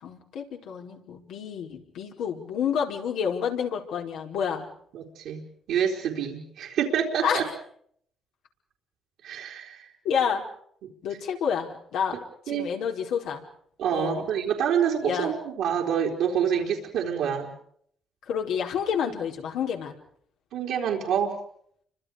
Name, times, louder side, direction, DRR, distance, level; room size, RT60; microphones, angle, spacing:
voice 1, 0.0-4.7 7.2-7.4 10.0-10.4 11.0-12.2 12.5-13.4 13.9-14.3 15.0-15.3 18.3-19.9, left 7 dB, 85° left, 1 dB, 4.7 m, -29 dB
voice 2, 4.9-7.4 9.2-9.9 12.5-12.7 13.8-17.5 20.5-21.4, right 8 dB, 85° right, -1 dB, 4.2 m, -27 dB
30.0 x 25.0 x 5.1 m, 0.64 s
cardioid pair, 90°, 0 cm